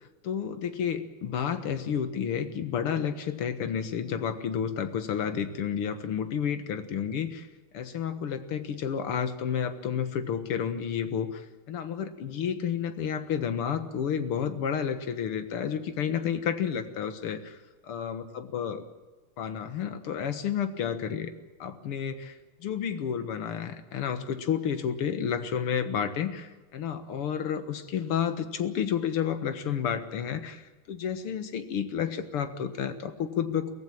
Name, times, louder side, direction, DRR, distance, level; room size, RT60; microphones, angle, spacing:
voice 1, 0.2-7.5 7.7-17.6 17.8-18.8 19.4-21.3 21.6-33.7, left 8 dB, 90° left, 10 dB, 2.4 m, -31 dB
23.5 x 16.0 x 8.7 m, 1.2 s
omnidirectional pair, 2.4 m